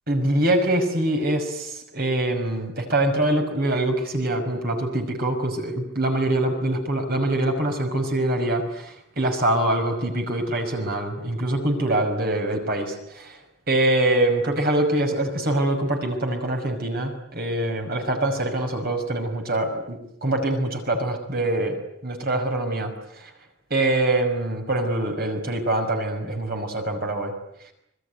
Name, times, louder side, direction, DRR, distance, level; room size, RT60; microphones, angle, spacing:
voice 1, 0.1-13.4 13.7-21.8 22.0-23.3 23.7-27.3, right 1 dB, 50° right, 4 dB, 5.8 m, -24 dB
26.5 x 21.5 x 9.5 m, 0.78 s
head